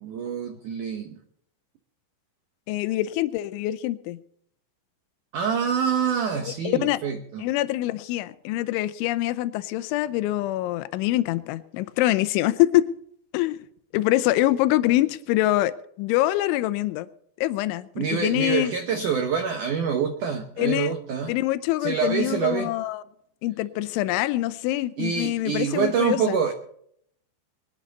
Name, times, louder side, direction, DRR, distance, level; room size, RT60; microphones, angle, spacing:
voice 1, 0.0-1.1 5.3-7.4 18.0-21.3 21.8-22.7 25.0-26.5, right 7 dB, 85° right, 6 dB, 1.7 m, -26 dB
voice 2, 2.7-4.2 6.5-7.0 7.4-12.9 13.3-13.6 13.9-17.1 17.4-18.7 20.6-20.9 21.3-23.0 23.4-26.4, left 15 dB, 85° left, 14 dB, 3.1 m, -24 dB
21.5 x 12.0 x 4.1 m, 0.67 s
omnidirectional pair, 5.4 m